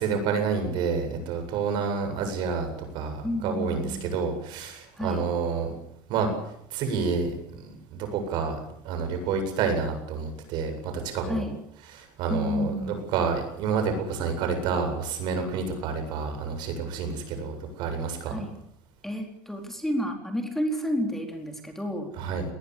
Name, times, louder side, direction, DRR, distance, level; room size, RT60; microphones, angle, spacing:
voice 1, 0.0-2.7 2.9-5.7 6.1-6.3 6.7-8.5 8.8-11.4 11.9-18.4 22.2-22.4, right 5 dB, 60° right, 6 dB, 7.9 m, -29 dB
voice 2, 3.2-4.1 4.9-5.2 11.2-11.6 12.3-13.1 18.3-18.5 19.0-22.1, left 1 dB, 5° left, 3 dB, 4.0 m, -30 dB
21.5 x 19.5 x 8.5 m, 0.76 s
cardioid pair, 140°, 9 cm